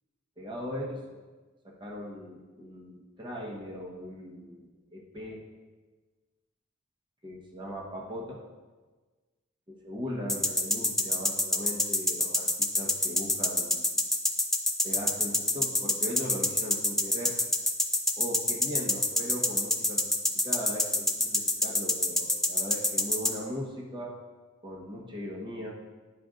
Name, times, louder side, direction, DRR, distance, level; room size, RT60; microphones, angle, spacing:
voice 1, 0.4-1.2 1.6-5.4 7.2-8.4 9.7-13.9 14.8-17.4 18.2-20.1 20.4-24.2 24.6-25.7, equal, 20° right, -3 dB, 1.0 m, -39 dB
sound 1, 10.3-23.3, left 2 dB, ahead, 0.4 m, -25 dB
10.5 x 5.0 x 2.5 m, 1.3 s
head